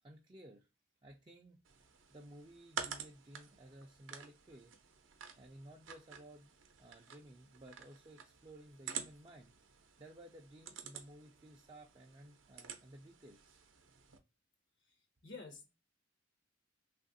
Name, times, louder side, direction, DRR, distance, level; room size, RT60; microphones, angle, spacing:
voice 1, 0.0-0.7 1.0-1.6 2.1-4.8 5.4-6.5 6.8-9.5 10.0-13.6, right 1 dB, 25° right, 0.4 m, -56 dB
sound 1, 1.7-14.2, right 7 dB, 70° right, 0.6 m, -50 dB
voice 2, 14.8-15.7, left 4 dB, 55° left, 0.7 m, -51 dB
3.3 x 2.4 x 2.5 m
head